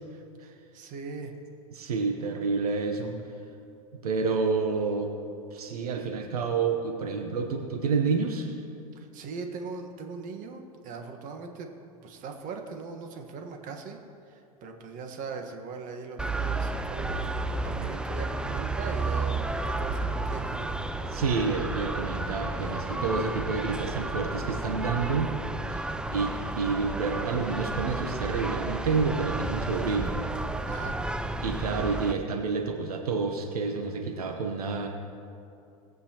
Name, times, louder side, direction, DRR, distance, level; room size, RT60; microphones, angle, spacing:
voice 1, 0.1-1.3 8.9-11.7 12.0-14.0 14.3-20.7 30.7-31.0, right 4 dB, 45° right, 4 dB, 1.5 m, -40 dB
voice 2, 1.7-3.2 4.0-5.1 5.5-8.6 21.0-25.3 25.7-30.2 31.4-34.9, right 4 dB, 85° right, 3 dB, 1.0 m, -29 dB
sound 1, 16.2-32.1, right 2 dB, 5° right, 0.5 m, -32 dB
19.0 x 8.1 x 3.0 m, 2.6 s
hypercardioid pair, 100°, 19 cm